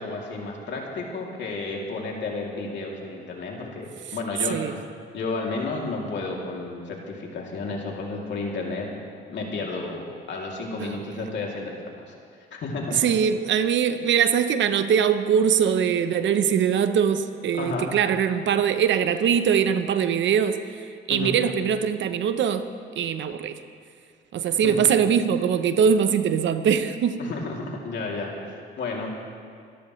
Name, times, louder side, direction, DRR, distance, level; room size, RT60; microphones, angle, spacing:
voice 1, 0.0-4.8 5.1-8.9 9.3-11.7 12.0-12.1 12.5-13.0 17.5-17.9 21.1-21.3 24.6-24.9 27.2-29.2, left 3 dB, 65° left, -2 dB, 2.9 m, -32 dB
voice 2, 12.9-20.8 21.1-22.7 23.0-23.6 24.3-27.2, right 8 dB, 70° right, 10 dB, 0.9 m, -22 dB
25.5 x 13.0 x 3.2 m, 2.2 s
cardioid pair, 90°, 20 cm